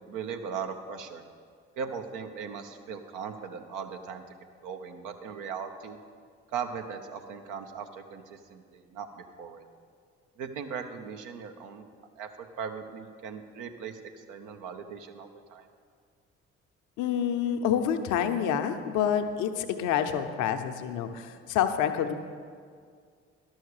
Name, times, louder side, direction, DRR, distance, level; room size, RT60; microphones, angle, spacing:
voice 1, 0.1-1.2 1.8-4.2 4.6-6.0 6.5-9.7 10.4-11.9 12.2-12.3 12.6-15.7, right 6 dB, 70° right, 6 dB, 0.9 m, -38 dB
voice 2, 17.0-22.1, left 9 dB, 65° left, 7 dB, 0.8 m, -28 dB
11.5 x 6.4 x 6.6 m, 2.1 s
hypercardioid pair, 50°, 32 cm